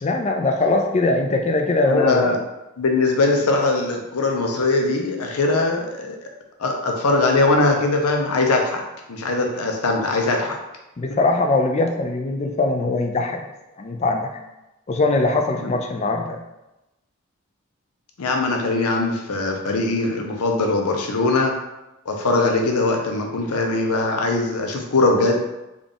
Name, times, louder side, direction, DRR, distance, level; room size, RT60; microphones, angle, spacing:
voice 1, 0.0-2.4 11.0-13.4 13.8-14.3 14.9-16.4, left 2 dB, 30° left, 3 dB, 0.3 m, -21 dB
voice 2, 1.9-2.4 2.8-6.2 6.6-8.8 9.1-10.6 15.6-15.7 18.2-21.6 22.1-25.4, left 2 dB, 85° left, 2 dB, 0.6 m, -21 dB
3.6 x 2.4 x 3.7 m, 0.94 s
head